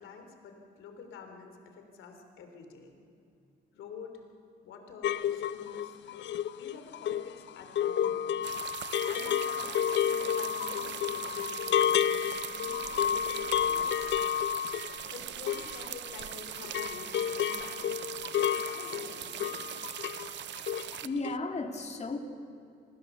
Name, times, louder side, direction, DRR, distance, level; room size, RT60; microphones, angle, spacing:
voice 1, 0.0-2.9 3.7-4.2 4.6-6.0 6.5-8.4 9.1-14.1 14.9-19.8, left 5 dB, 85° left, 5 dB, 3.3 m, -48 dB
sound 1, 5.0-16.3 16.6-20.3 20.6-21.0 21.2-21.4, left 9 dB, 70° left, 0.7 m, -31 dB
sound 2, 8.4-21.1, right 12 dB, 65° right, 0.5 m, -41 dB
voice 2, 21.0-22.2, left 3 dB, 35° left, 5 dB, 2.4 m, -34 dB
27.0 x 19.5 x 7.1 m, 2.5 s
cardioid pair, 90°, 20 cm